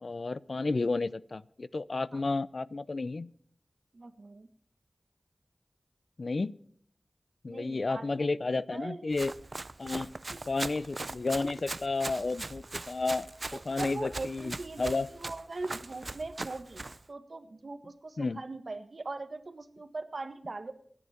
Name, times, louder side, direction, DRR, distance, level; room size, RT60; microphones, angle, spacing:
voice 1, 0.0-3.3 6.2-6.5 7.4-9.3 9.8-10.1 10.5-15.1 18.2-18.4, left 3 dB, 70° left, 19 dB, 0.6 m, -32 dB
voice 2, 3.9-4.5 7.5-8.3 8.7-9.1 10.3-10.4 13.5-16.8 17.1-20.7, right 3 dB, 70° right, 9 dB, 1.6 m, -40 dB
Run, 9.1-17.0, right 2 dB, 50° right, 0.6 m, -40 dB
28.5 x 10.0 x 4.4 m, 0.62 s
wide cardioid pair, 75°, 0 cm